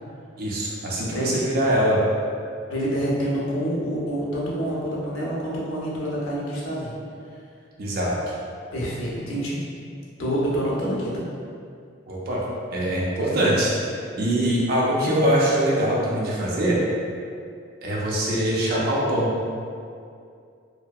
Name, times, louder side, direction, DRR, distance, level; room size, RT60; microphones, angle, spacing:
voice 1, 0.4-2.0 7.8-8.1 12.1-16.8 17.8-19.3, right 1 dB, 50° right, -4 dB, 0.4 m, -23 dB
voice 2, 2.7-6.9 8.7-9.6 10.2-11.2, equal, 85° left, -5 dB, 0.6 m, -27 dB
2.7 x 2.1 x 2.3 m, 2.4 s
head